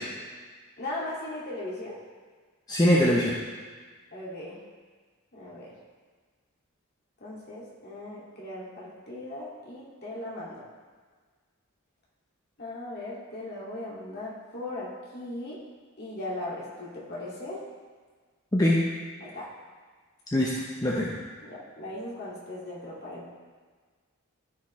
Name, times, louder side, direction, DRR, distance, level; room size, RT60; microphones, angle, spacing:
voice 1, 0.8-2.0 4.1-4.6 5.3-5.7 7.2-10.7 12.6-15.6 16.0-17.6 19.2-19.5 21.4-23.3, left 1 dB, 45° left, -6 dB, 2.2 m, -38 dB
voice 2, 2.7-3.3 18.5-18.8 20.3-20.5 20.8-21.1, left 1 dB, 15° left, -5 dB, 0.7 m, -22 dB
13.5 x 5.1 x 3.2 m, 1.5 s
head